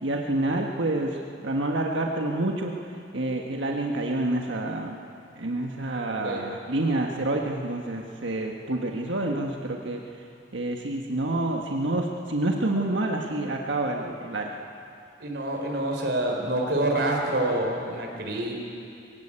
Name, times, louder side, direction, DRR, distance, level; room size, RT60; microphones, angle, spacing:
voice 1, 0.0-2.7 3.1-5.0 5.4-10.0 10.5-14.5, right 2 dB, 90° right, 1 dB, 1.5 m, -28 dB
voice 2, 15.2-18.5, right 1 dB, 65° right, 1 dB, 4.3 m, -27 dB
22.0 x 17.0 x 8.9 m, 2.5 s
head